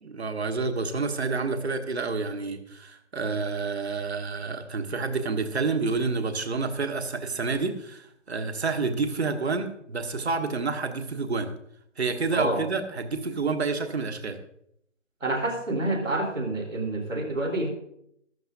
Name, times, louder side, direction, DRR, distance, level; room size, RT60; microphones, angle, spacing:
voice 1, 0.0-11.5 12.0-14.4, right 4 dB, 60° right, 7 dB, 1.5 m, -29 dB
voice 2, 15.2-17.7, right 1 dB, 85° right, 2 dB, 3.7 m, -28 dB
14.5 x 12.0 x 2.6 m, 0.73 s
figure-of-eight pair, 160°, 37 cm